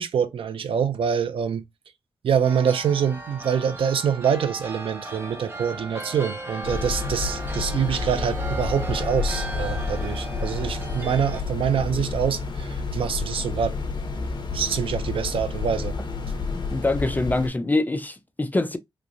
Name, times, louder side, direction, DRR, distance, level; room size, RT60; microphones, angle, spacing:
voice 1, 0.0-1.6 2.2-13.7 14.5-16.0, right 7 dB, 90° right, 0.5 m, -25 dB
sound 1, 2.4-11.4, right 2 dB, 25° right, 0.7 m, -37 dB
sound 2, 6.6-17.5, left 4 dB, 55° left, 0.8 m, -30 dB
voice 2, 16.5-18.8, left 2 dB, 20° left, 0.4 m, -24 dB
3.3 x 3.1 x 2.5 m
wide cardioid pair, 110°, 9 cm